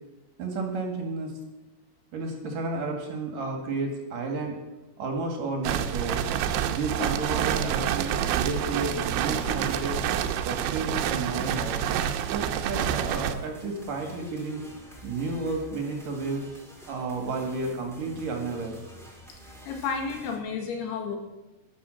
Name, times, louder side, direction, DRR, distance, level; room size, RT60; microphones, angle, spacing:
voice 1, 0.4-1.4 2.1-4.6 5.0-6.2 6.7-10.0 10.5-11.8 12.3-14.6 15.0-16.4 16.9-18.8, right 3 dB, 55° right, 2 dB, 3.2 m, -32 dB
sound 1, 5.6-13.4, right 9 dB, 85° right, 3.0 m, -28 dB
sound 2, 11.3-20.4, left 1 dB, ahead, 1.8 m, -49 dB
voice 2, 19.7-21.2, left 5 dB, 70° left, 3 dB, 3.8 m, -31 dB
13.0 x 11.5 x 6.4 m, 1.0 s
omnidirectional pair, 4.9 m